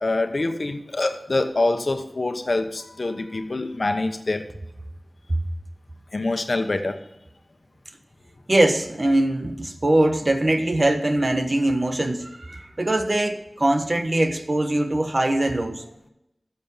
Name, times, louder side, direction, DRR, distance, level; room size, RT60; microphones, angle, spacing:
voice 1, 0.0-4.5 6.1-7.0, left 2 dB, 65° left, 7 dB, 1.1 m, -25 dB
voice 2, 8.5-15.8, right 1 dB, 50° right, 6 dB, 1.3 m, -22 dB
12.5 x 7.3 x 5.7 m, 0.88 s
wide cardioid pair, 50°, 0 cm